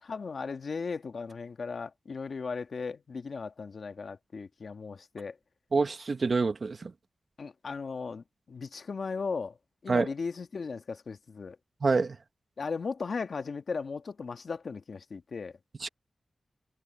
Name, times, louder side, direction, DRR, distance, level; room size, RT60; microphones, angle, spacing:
voice 1, 0.0-5.4 7.4-9.6 9.8-11.6 12.6-15.5, left 4 dB, 65° left, 1.7 m, -37 dB
voice 2, 5.7-6.9 9.9-10.1 11.8-12.2 15.8-15.9, right 4 dB, 55° right, 1.6 m, -26 dB
wide cardioid pair, 75°, 0 cm